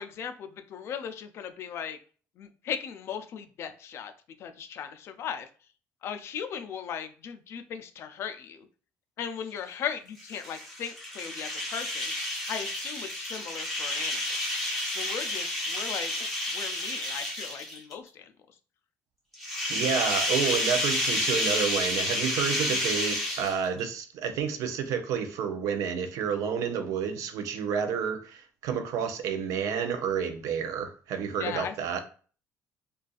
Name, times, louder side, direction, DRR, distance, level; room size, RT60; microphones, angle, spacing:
voice 1, 0.0-2.0 2.4-4.1 4.4-5.5 6.0-8.7 9.2-12.1 12.5-14.2 14.9-16.3 16.5-18.3 31.4-31.7, left 8 dB, 50° left, 0.4 m, -37 dB
sound 1, 10.2-17.9 19.3-23.8, left 1 dB, 5° left, 1.1 m, -30 dB
voice 2, 19.7-32.0, right 7 dB, 70° right, 0.5 m, -30 dB
3.9 x 2.3 x 2.4 m
cardioid pair, 165°, 6 cm